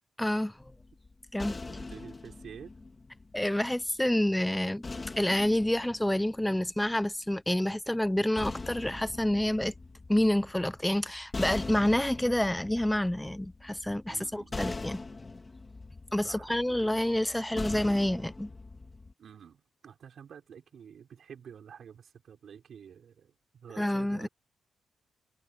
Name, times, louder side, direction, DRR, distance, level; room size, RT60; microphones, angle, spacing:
voice 1, 0.2-0.6 1.3-1.6 3.3-4.8 5.2-9.7 10.1-15.0 16.1-18.5 23.8-24.3, left 1 dB, 5° left, 0.6 m, -28 dB
sound 1, 0.6-3.9 4.8-7.1 8.0-19.1, left 3 dB, 20° left, 2.8 m, -42 dB
voice 2, 1.7-2.8 14.1-14.7 16.2-16.9 19.2-24.3, right 8 dB, 60° right, 5.4 m, -49 dB
wide cardioid pair, 150°, 0 cm